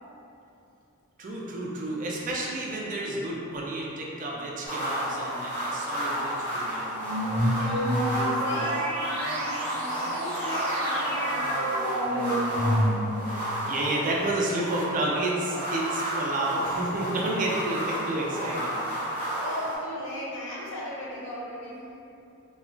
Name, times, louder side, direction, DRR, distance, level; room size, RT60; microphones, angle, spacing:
voice 1, 1.2-7.0 13.3-18.8, right 1 dB, 40° right, -3 dB, 0.4 m, -30 dB
sound 1, 4.6-19.8, right 1 dB, 10° left, 0.9 m, -32 dB
sound 2, 7.0-13.3, equal, 75° right, 0.7 m, -28 dB
voice 2, 7.5-12.8 17.7-17.9 19.4-21.9, left 1 dB, 60° left, -5 dB, 0.6 m, -37 dB
3.1 x 2.2 x 2.5 m, 2.7 s
head